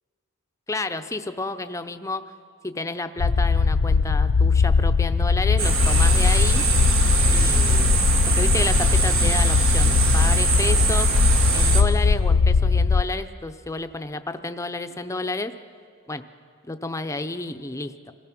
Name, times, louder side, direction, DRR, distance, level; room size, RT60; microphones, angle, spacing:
voice 1, 0.7-2.2 2.6-6.7 7.3-7.9 8.4-11.1 11.5-15.5 16.1-16.2 16.7-18.1, left 2 dB, 15° left, 8 dB, 0.6 m, -30 dB
sound 1, 3.2-13.0, left 4 dB, 85° left, 0.5 m, -20 dB
sound 2, 5.6-11.8, right 4 dB, 70° right, 1.7 m, -23 dB
26.0 x 17.0 x 6.0 m, 2.2 s
head